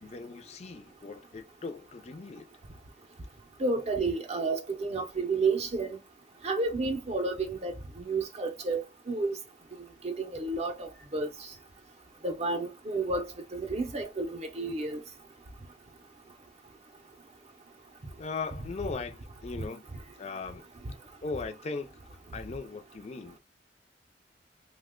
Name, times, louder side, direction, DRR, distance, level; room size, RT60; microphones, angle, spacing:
voice 1, 0.0-2.5 18.2-19.8 20.2-20.7 21.2-21.9 22.3-23.4, left 4 dB, 35° left, 0.4 m, -38 dB
voice 2, 3.6-6.0 6.4-9.4 10.0-11.3 12.2-13.3 13.5-15.0, right 3 dB, 35° right, 0.6 m, -31 dB
2.8 x 2.2 x 3.6 m
head